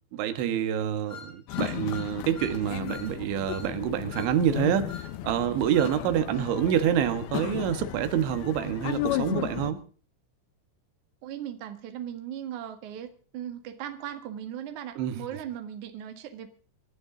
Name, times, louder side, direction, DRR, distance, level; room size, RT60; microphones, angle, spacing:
voice 1, 0.1-9.8 15.0-15.2, right 9 dB, 85° right, 3.7 m, -27 dB
sound 1, 1.1-2.6 2.9-3.1 3.5-3.7 4.1-4.3 4.9-5.1 5.7-6.0, left 5 dB, 15° left, 3.3 m, -43 dB
sound 2, 1.5-9.7, left 14 dB, 75° left, 2.5 m, -34 dB
voice 2, 6.3-6.6 11.2-16.5, right 10 dB, 55° right, 2.6 m, -38 dB
26.5 x 11.5 x 3.9 m
omnidirectional pair, 5.2 m